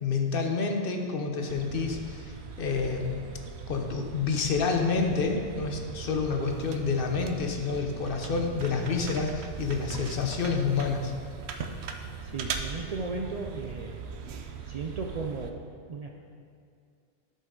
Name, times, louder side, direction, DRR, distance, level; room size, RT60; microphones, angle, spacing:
voice 1, 0.0-3.2 3.7-11.1, left 4 dB, 60° left, 3 dB, 0.9 m, -28 dB
sound 1, 1.5-15.5, right 6 dB, 85° right, 0.9 m, -40 dB
voice 2, 12.2-14.0 14.7-16.1, right 4 dB, 50° right, 1 dB, 0.5 m, -35 dB
11.0 x 5.4 x 3.8 m, 2.3 s
omnidirectional pair, 1.1 m